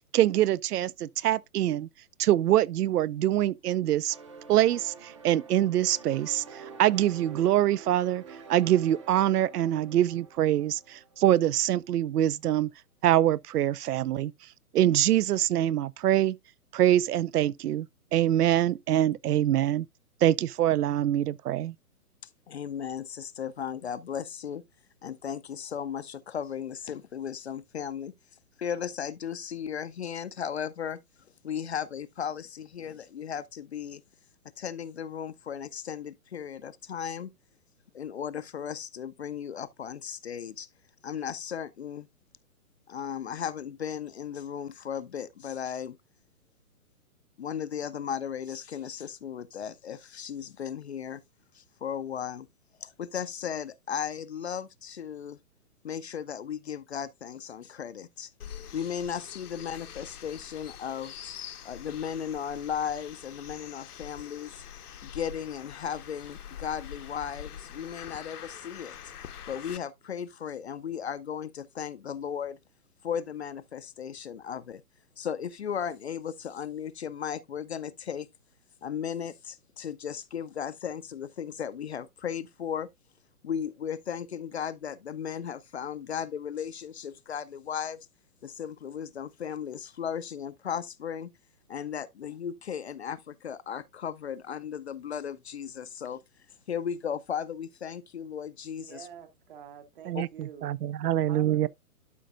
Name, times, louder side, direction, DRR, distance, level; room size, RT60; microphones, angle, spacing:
voice 1, 0.1-1.9 2.2-4.1 4.5-8.2 8.5-12.7 13.0-14.3 14.7-16.4 16.7-17.9 18.1-19.9 20.2-21.7 100.1-101.7, right 12 dB, 80° right, 0.6 m, -24 dB
sound 1, 4.1-11.6, right 5 dB, 20° right, 0.7 m, -48 dB
voice 2, 22.5-24.6 25.0-28.1 28.6-31.0 31.4-34.0 34.6-37.3 37.9-40.7 41.0-42.1 42.9-46.0 47.4-51.2 51.5-52.5 52.8-55.4 55.8-58.3 58.7-61.3 61.6-64.6 65.0-69.0 69.5-72.6 73.0-74.8 75.2-78.3 78.8-82.9 83.4-88.1 88.4-91.3 91.7-96.2 96.7-99.1 100.1-100.2, left 8 dB, 45° left, 0.5 m, -36 dB
sound 2, 58.4-69.8, left 9 dB, 80° left, 1.0 m, -45 dB
voice 3, 98.9-100.7 101.3-101.7, right 8 dB, 35° right, 1.1 m, -47 dB
12.0 x 5.2 x 2.5 m
hypercardioid pair, 160°, 45 cm